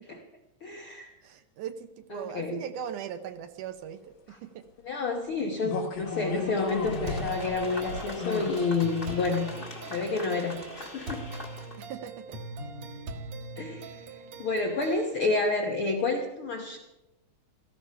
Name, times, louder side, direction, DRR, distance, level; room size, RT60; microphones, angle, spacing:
voice 1, 0.6-1.1 2.1-2.6 4.8-11.2 13.6-16.8, left 3 dB, 70° left, 2 dB, 1.3 m, -30 dB
voice 2, 1.2-4.0 4.3-4.6 11.8-12.4, right 9 dB, 75° right, 10 dB, 2.0 m, -39 dB
sound 1, 5.6-8.7 9.1-9.2, left 4 dB, 85° left, 3.9 m, -35 dB
sound 2, 5.9-11.9, left 3 dB, 25° left, 1.1 m, -42 dB
sound 3, 7.1-15.1, right 2 dB, 60° right, 2.2 m, -41 dB
17.0 x 13.5 x 5.6 m, 1.0 s
omnidirectional pair, 4.0 m